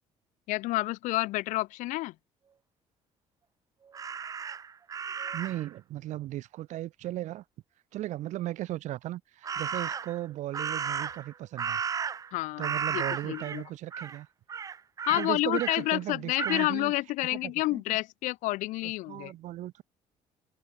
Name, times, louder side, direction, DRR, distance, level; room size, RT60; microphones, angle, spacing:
voice 1, 0.5-2.1 12.3-13.6 15.1-19.3, left 19 dB, 85° left, 0.5 m, -29 dB
Crow, 3.9-5.7 9.4-10.2 10.5-12.3 12.6-13.6 13.9-14.2 14.5-15.8 16.4-16.7, right 6 dB, 25° right, 0.4 m, -34 dB
voice 2, 5.3-7.4 7.9-11.8 12.6-14.3 15.1-16.9 17.3-18.0 18.8-19.8, right 15 dB, 70° right, 0.9 m, -36 dB
Guitar, 10.0-12.6, right 9 dB, 50° right, 3.7 m, -61 dB
cardioid pair, 120°, 13 cm